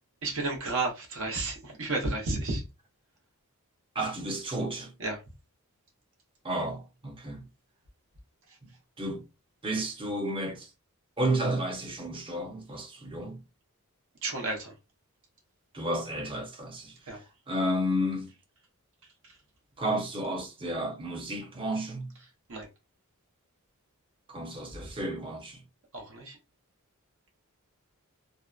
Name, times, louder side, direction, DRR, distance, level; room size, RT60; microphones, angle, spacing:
voice 1, 0.2-2.6 5.0-5.2 14.2-14.7 17.1-17.2 22.5-22.7 25.9-26.4, right 2 dB, 60° right, 0.8 m, -32 dB
voice 2, 3.9-4.9 6.4-7.5 9.0-9.2 9.6-10.7 11.2-13.4 15.7-18.3 19.8-22.1 24.3-25.6, right 1 dB, 25° right, 0.6 m, -32 dB
2.7 x 2.1 x 2.3 m
head